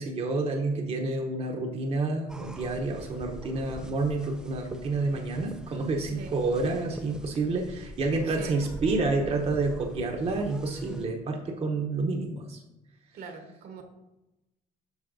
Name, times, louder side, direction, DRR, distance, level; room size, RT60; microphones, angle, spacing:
voice 1, 0.0-12.6, right 3 dB, 40° right, 2 dB, 0.8 m, -29 dB
sound 1, 2.3-11.1, right 1 dB, 5° right, 0.3 m, -43 dB
voice 2, 6.0-6.3 8.3-8.6 13.1-13.8, right 4 dB, 65° right, 4 dB, 1.1 m, -42 dB
8.0 x 5.4 x 2.6 m, 0.98 s
cardioid pair, 110°, 17 cm